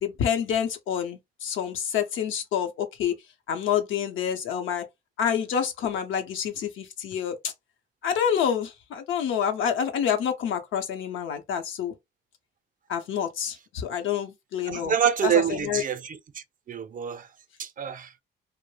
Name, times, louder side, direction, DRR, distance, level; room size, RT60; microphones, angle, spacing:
voice 1, 0.0-3.2 3.5-4.8 5.2-7.5 8.0-11.9 12.9-15.0 15.2-15.8, left 8 dB, 80° left, 0.7 m, -28 dB
voice 2, 14.7-16.2 16.7-17.2 17.6-18.1, right 9 dB, 45° right, 0.4 m, -26 dB
2.3 x 2.0 x 3.1 m
cardioid pair, 90°, 20 cm